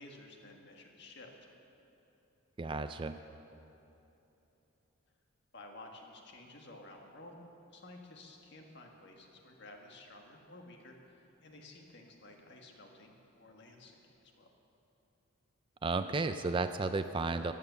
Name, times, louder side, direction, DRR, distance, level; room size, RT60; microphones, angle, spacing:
voice 1, 0.0-1.5 5.5-7.4 7.7-14.5, left 2 dB, 55° left, 2 dB, 1.6 m, -53 dB
voice 2, 2.6-3.2 15.8-17.5, right 3 dB, 25° right, 10 dB, 0.3 m, -33 dB
15.0 x 9.8 x 6.9 m, 3.0 s
head